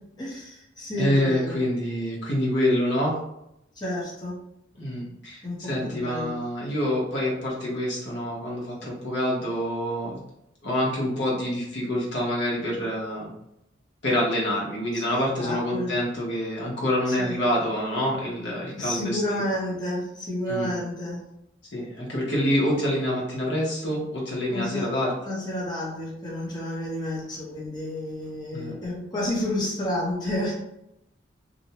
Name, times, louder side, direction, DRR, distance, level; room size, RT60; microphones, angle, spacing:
voice 1, 0.2-1.6 3.8-4.3 5.4-6.3 15.4-16.0 17.2-17.3 18.7-21.2 24.5-24.9 25.3-30.5, left 1 dB, 20° left, -7 dB, 0.8 m, -30 dB
voice 2, 0.9-3.2 4.8-10.2 10.6-13.3 14.0-19.2 20.5-20.7 21.7-25.1 28.5-28.8, equal, 70° left, -4 dB, 0.9 m, -26 dB
2.5 x 2.1 x 2.8 m, 0.81 s
head